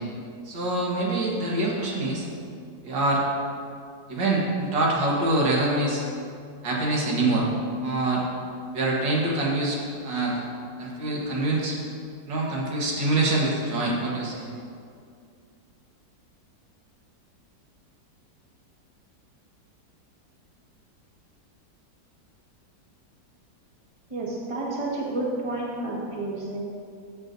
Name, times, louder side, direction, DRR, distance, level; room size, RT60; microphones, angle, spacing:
voice 1, 0.5-2.3 2.8-3.2 4.1-6.0 6.6-7.5 7.8-8.2 8.7-9.8 10.0-10.4 10.8-11.8 12.3-14.5, right 2 dB, 85° right, -3 dB, 2.1 m, -25 dB
voice 2, 24.1-26.6, right 2 dB, 20° right, -5 dB, 1.3 m, -30 dB
13.0 x 7.3 x 2.6 m, 2.3 s
omnidirectional pair, 1.9 m